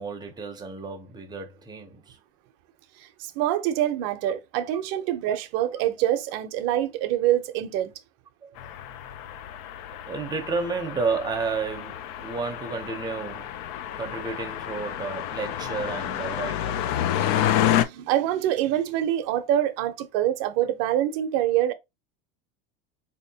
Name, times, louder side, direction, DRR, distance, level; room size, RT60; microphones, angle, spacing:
voice 1, 0.0-2.2 8.4-8.6 10.1-13.5 14.0-16.8, right 4 dB, 15° right, 0.7 m, -31 dB
voice 2, 3.0-7.9 17.6-21.7, right 12 dB, 55° right, 0.7 m, -25 dB
sound 1, 8.6-17.8, left 11 dB, 55° left, 0.5 m, -29 dB
4.1 x 2.8 x 2.7 m
supercardioid pair, 150°, 30 cm